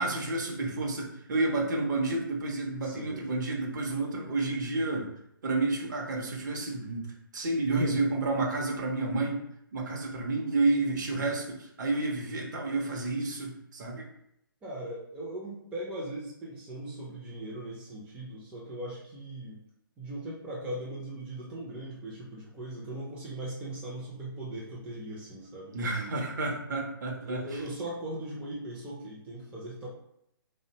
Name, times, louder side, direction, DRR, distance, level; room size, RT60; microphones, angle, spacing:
voice 1, 0.0-5.1 5.4-9.4 9.7-14.1 25.7-27.6, right 2 dB, 55° right, 0 dB, 0.6 m, -30 dB
voice 2, 2.8-3.3 7.7-8.1 14.6-19.6 20.0-26.1 27.2-29.9, right 1 dB, 10° right, -6 dB, 0.4 m, -39 dB
2.6 x 2.1 x 2.7 m, 0.77 s
figure-of-eight pair, 135°, 12 cm